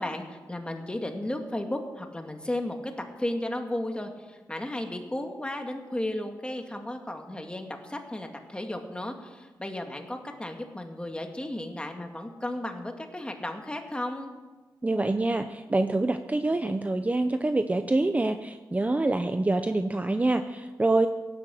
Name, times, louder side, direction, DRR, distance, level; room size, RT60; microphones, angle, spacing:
voice 1, 0.0-2.9 3.2-14.3, left 1 dB, 15° left, 4 dB, 2.2 m, -34 dB
voice 2, 14.8-21.1, right 2 dB, 20° right, 8 dB, 0.7 m, -26 dB
17.0 x 11.0 x 7.7 m, 1.3 s
wide cardioid pair, 95°, 7 cm